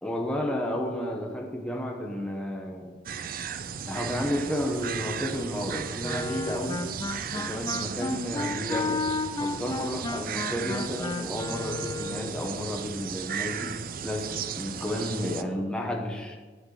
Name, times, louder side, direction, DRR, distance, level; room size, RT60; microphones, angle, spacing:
voice 1, 0.0-3.0 3.9-6.8 7.3-9.0 9.4-13.7 14.0-16.4, equal, 5° left, 0 dB, 1.1 m, -32 dB
sound 1, 3.1-15.4, right 7 dB, 55° right, 0.5 m, -35 dB
Wind instrument woodwind instrument, 6.0-12.4, left 3 dB, 20° left, 0.4 m, -32 dB
11.0 x 7.6 x 4.9 m, 1.4 s
head